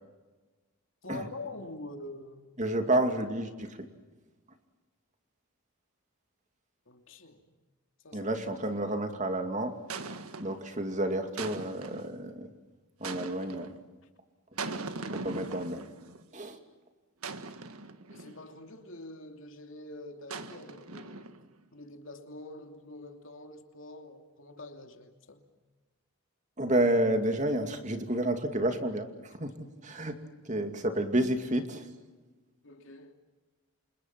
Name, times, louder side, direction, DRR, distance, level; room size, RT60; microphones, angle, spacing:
voice 1, 1.0-2.5 6.9-7.4 8.0-8.3 14.7-15.3 17.3-17.6 18.1-21.3 21.7-25.4 32.6-33.1, left 2 dB, 65° left, 2.8 m, -46 dB
voice 2, 2.6-3.8 8.1-9.8 10.4-12.5 13.0-13.7 14.6-15.8 16.3-16.6 26.6-30.2 30.4-31.9, right 1 dB, 35° right, 2.5 m, -30 dB
sound 1, 8.6-9.0 9.9-10.7 11.4-12.2 13.0-13.8 14.6-16.2 17.2-18.5 20.3-21.5, right 3 dB, 90° right, 1.7 m, -40 dB
29.5 x 27.0 x 6.0 m
head